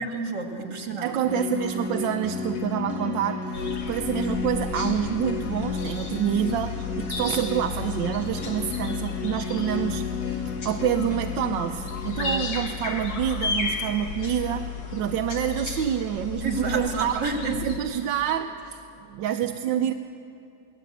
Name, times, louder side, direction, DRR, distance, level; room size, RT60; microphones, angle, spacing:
voice 1, 0.0-1.1 12.2-12.4 16.4-17.6, right 3 dB, 65° right, 3 dB, 2.8 m, -30 dB
voice 2, 1.0-17.2 17.5-18.8 19.1-19.9, right 10 dB, 85° right, 6 dB, 1.4 m, -27 dB
sound 1, 1.3-12.4, left 5 dB, 60° left, 2.0 m, -32 dB
sound 2, 3.5-17.8, left 6 dB, 80° left, 2.5 m, -34 dB
24.0 x 18.5 x 8.1 m, 2.7 s
omnidirectional pair, 2.0 m